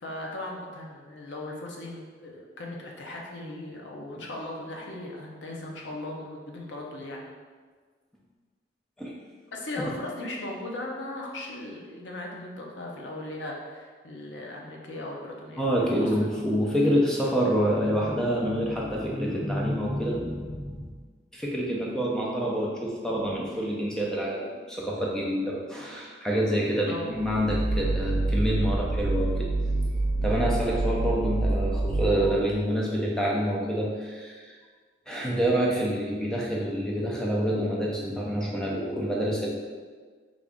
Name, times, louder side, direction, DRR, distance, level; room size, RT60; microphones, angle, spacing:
voice 1, 0.0-7.3 9.5-16.4 26.9-27.2, left 2 dB, 85° left, -1 dB, 0.6 m, -38 dB
voice 2, 15.6-20.9 21.3-29.5 30.2-34.6 35.1-39.5, equal, 5° left, -4 dB, 0.5 m, -27 dB
sound 1, 27.2-32.6, right 2 dB, 45° right, 0.5 m, -27 dB
3.4 x 2.4 x 3.6 m, 1.5 s
head